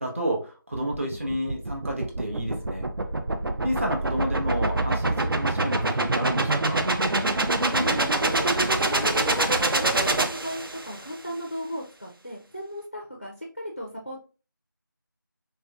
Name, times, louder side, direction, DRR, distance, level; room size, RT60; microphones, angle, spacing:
voice 1, 0.0-2.9 3.6-6.8, equal, 35° right, 0 dB, 0.8 m, -30 dB
sound 1, 0.7-11.0, right 2 dB, 85° right, 0.5 m, -25 dB
voice 2, 7.7-9.5 9.8-14.2, equal, 30° left, 0 dB, 0.4 m, -36 dB
3.3 x 2.7 x 2.2 m, 0.34 s
figure-of-eight pair, 175°, 12 cm